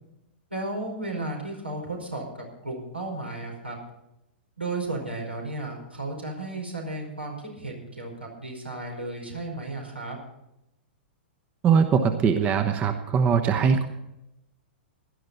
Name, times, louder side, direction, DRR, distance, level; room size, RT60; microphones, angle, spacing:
voice 1, 0.5-3.8 4.6-10.2, right 2 dB, 90° right, -1 dB, 4.7 m, -34 dB
voice 2, 11.6-13.9, right 6 dB, 25° right, 8 dB, 1.1 m, -21 dB
17.5 x 11.5 x 4.1 m, 0.86 s
figure-of-eight pair, 105°, 6 cm